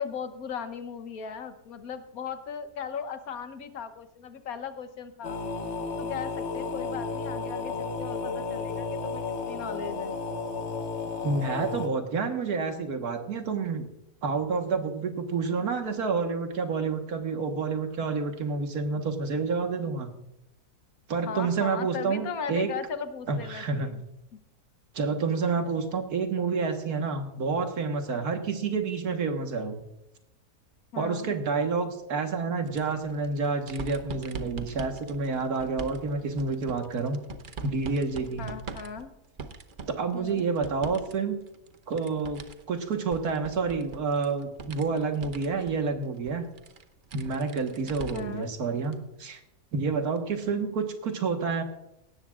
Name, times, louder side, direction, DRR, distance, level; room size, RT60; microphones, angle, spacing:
voice 1, 0.0-5.4 6.0-10.2 21.3-24.0 30.9-31.3 38.4-39.1 40.1-40.5 48.1-48.5, left 6 dB, 70° left, 9 dB, 1.4 m, -37 dB
sound 1, 5.2-11.9, left 4 dB, 50° left, 1.5 m, -33 dB
voice 2, 11.2-13.9 14.2-20.1 21.1-22.7 23.3-23.9 24.9-29.8 31.0-37.2 37.6-38.5 39.9-41.4 41.9-42.4 42.7-46.5 47.1-49.4 49.7-51.6, right 4 dB, 80° right, 5 dB, 1.9 m, -29 dB
sound 2, 32.6-41.1 41.4-48.4 48.8-48.9 50.2-50.3, right 4 dB, 45° right, 0.8 m, -43 dB
17.5 x 13.5 x 2.4 m, 0.85 s
omnidirectional pair, 1.6 m